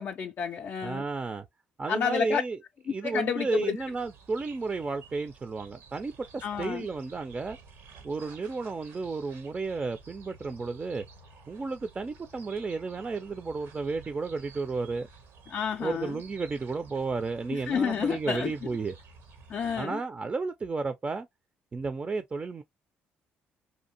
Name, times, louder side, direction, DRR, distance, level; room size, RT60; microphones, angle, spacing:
voice 1, 0.0-1.0 1.9-2.4 2.9-3.8 6.4-6.9 15.5-16.2 17.5-18.5 19.5-20.0, left 7 dB, 50° left, 0.3 m, -30 dB
voice 2, 0.8-1.4 1.8-2.6 2.9-7.6 8.0-11.0 11.5-15.1 15.8-18.9 19.8-21.3 21.7-22.6, right 4 dB, 30° right, 0.4 m, -32 dB
sound 1, 3.8-19.8, right 4 dB, 80° right, 0.7 m, -53 dB
2.6 x 2.4 x 2.7 m
supercardioid pair, 70°, 4 cm